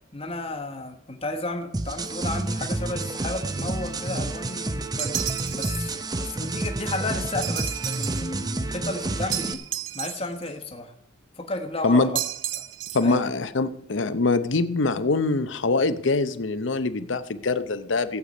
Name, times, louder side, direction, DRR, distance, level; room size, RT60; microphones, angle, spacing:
voice 1, 0.1-5.2 5.5-9.6 9.9-10.9 11.4-12.1 12.5-12.6 13.0-13.2, left 2 dB, 30° left, 4 dB, 1.2 m, -33 dB
sound 1, 1.7-9.5, right 2 dB, 20° right, 0.6 m, -30 dB
sound 2, 5.0-6.0 7.4-8.3 9.3-10.5 12.2-13.2, right 13 dB, 80° right, 0.5 m, -32 dB
voice 2, 12.9-18.2, left 3 dB, 75° left, 12 dB, 0.7 m, -23 dB
15.5 x 8.2 x 5.3 m, 0.80 s
head